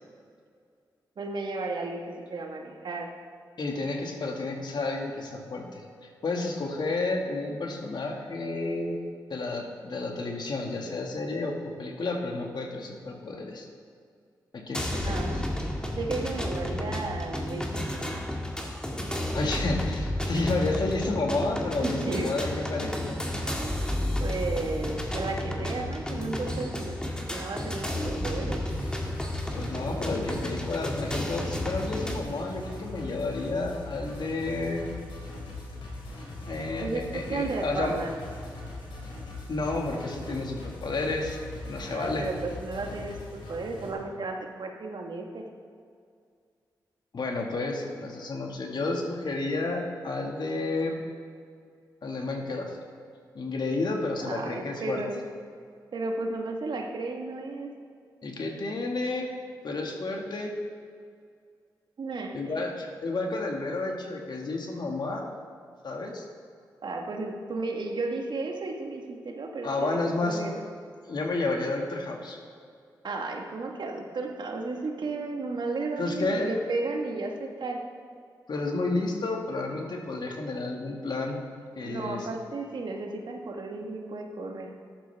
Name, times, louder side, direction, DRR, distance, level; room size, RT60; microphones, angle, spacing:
voice 1, 1.2-3.1 15.0-15.5 15.9-18.3 20.3-20.7 21.8-22.3 24.2-28.6 36.8-38.1 41.9-45.4 54.2-55.2 55.9-57.7 62.0-62.6 66.8-69.9 70.2-70.6 73.0-77.8 81.8-84.7, right 3 dB, 65° right, 2 dB, 1.6 m, -34 dB
voice 2, 3.6-5.8 6.2-9.0 9.3-13.7 14.5-15.3 19.3-23.2 29.5-34.9 36.5-37.9 39.5-42.3 47.1-51.0 52.0-52.7 53.3-55.0 58.2-59.3 59.6-60.5 62.3-65.2 65.8-66.3 69.6-70.4 71.1-72.4 76.0-76.5 78.5-81.4 81.8-82.3, left 2 dB, 60° left, 1 dB, 2.0 m, -31 dB
sound 1, 14.7-32.2, left 1 dB, 10° left, 2.1 m, -32 dB
sound 2, 28.7-43.9, left 2 dB, 85° left, 3.3 m, -40 dB
14.0 x 11.5 x 3.5 m, 2.2 s
supercardioid pair, 45°, 8 cm